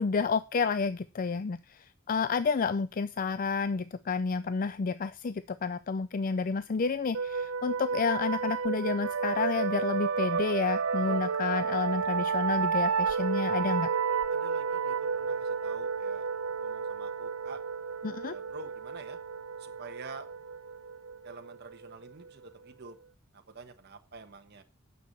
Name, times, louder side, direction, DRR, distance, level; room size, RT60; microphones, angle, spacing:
voice 1, 0.0-13.9 18.0-18.3, left 5 dB, 40° left, 14 dB, 0.4 m, -30 dB
sound 1, 7.1-22.5, right 6 dB, 85° right, 0.6 m, -31 dB
voice 2, 14.3-16.3 16.6-17.6 18.2-19.2 19.6-20.3 21.2-22.9 23.3-24.6, right 3 dB, 55° right, 5 dB, 1.2 m, -47 dB
9.4 x 6.9 x 6.7 m, 0.32 s
head